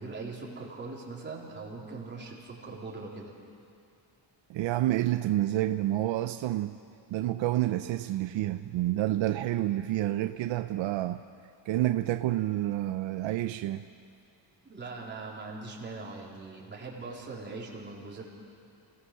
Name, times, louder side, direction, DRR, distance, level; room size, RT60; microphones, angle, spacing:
voice 1, 0.0-3.3 14.6-18.2, right 3 dB, 25° right, -4 dB, 3.8 m, -41 dB
voice 2, 4.5-6.8 7.1-11.2 11.7-13.8, right 14 dB, 75° right, 10 dB, 0.7 m, -29 dB
28.0 x 17.5 x 6.5 m, 2.5 s
cardioid pair, 155°, 46 cm